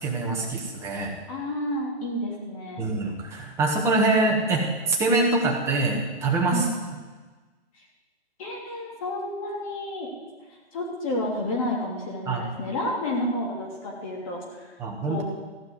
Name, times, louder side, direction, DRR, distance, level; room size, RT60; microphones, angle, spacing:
voice 1, 0.0-1.2 2.8-6.6 12.3-12.5 14.8-15.2, right 3 dB, 10° right, -1 dB, 1.3 m, -24 dB
voice 2, 1.3-2.9 6.5-6.7 8.4-10.2 10.7-14.7 15.0-15.2, left 1 dB, 30° left, -2 dB, 3.2 m, -30 dB
15.5 x 5.9 x 9.4 m, 1.3 s
hypercardioid pair, 160°, 34 cm